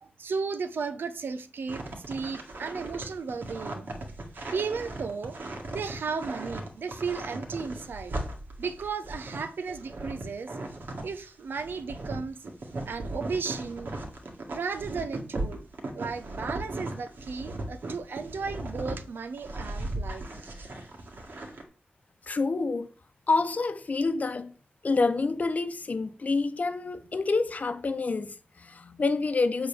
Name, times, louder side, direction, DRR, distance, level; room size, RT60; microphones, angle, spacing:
voice 1, 0.0-3.9 4.5-5.4 5.7-8.1 8.6-10.6 11.0-12.4 12.9-13.9 14.5-15.6 15.9-20.2, right 5 dB, 90° right, 0.8 m, -34 dB
sound 1, 1.7-11.2 11.5-19.0 19.4-21.6, right 2 dB, 70° right, 1.9 m, -37 dB
voice 2, 22.3-22.9 23.3-24.5 24.8-29.7, left 3 dB, 45° left, 0.8 m, -27 dB
7.9 x 4.0 x 6.8 m
wide cardioid pair, 110°, 4 cm